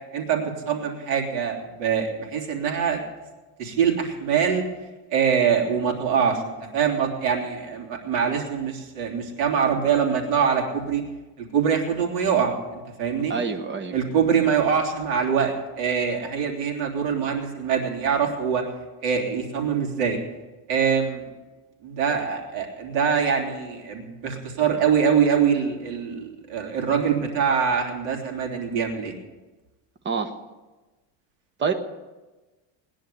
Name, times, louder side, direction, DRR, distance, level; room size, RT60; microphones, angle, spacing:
voice 1, 0.1-3.0 3.6-4.6 5.1-11.0 11.4-13.3 13.9-18.6 19.0-20.2 20.7-21.2 21.8-29.2, right 7 dB, 85° right, 1 dB, 3.3 m, -24 dB
voice 2, 13.3-13.9 30.0-30.3 31.6-31.7, right 5 dB, 25° right, 7 dB, 1.1 m, -26 dB
19.0 x 10.5 x 6.8 m, 1.2 s
cardioid pair, 160°, 46 cm